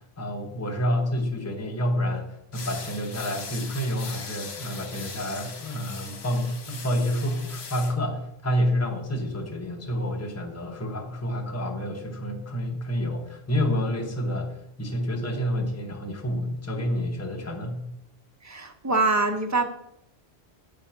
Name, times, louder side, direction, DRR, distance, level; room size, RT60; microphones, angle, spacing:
voice 1, 0.0-17.8, equal, 15° left, 2 dB, 0.8 m, -29 dB
sound 1, 2.5-7.9, left 4 dB, 65° left, 1.2 m, -40 dB
voice 2, 18.4-19.7, right 3 dB, 25° right, 5 dB, 0.4 m, -24 dB
8.0 x 3.7 x 5.6 m, 0.79 s
omnidirectional pair, 1.1 m